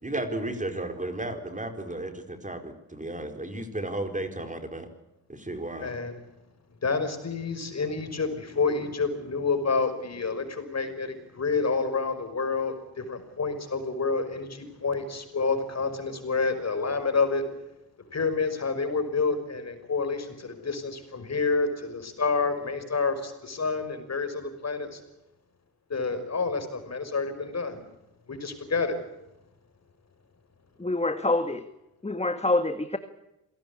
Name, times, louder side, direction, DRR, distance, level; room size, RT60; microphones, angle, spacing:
voice 1, 0.0-4.9 5.3-5.9, right 1 dB, 20° right, 7 dB, 4.6 m, -34 dB
voice 2, 5.8-6.1 6.8-17.4 18.1-25.0 25.9-27.8 28.3-29.0, left 4 dB, 45° left, 9 dB, 5.7 m, -28 dB
voice 3, 30.8-31.6 32.0-33.0, left 2 dB, 15° left, 9 dB, 1.8 m, -26 dB
27.0 x 18.0 x 8.6 m, 0.93 s
supercardioid pair, 60°, 38 cm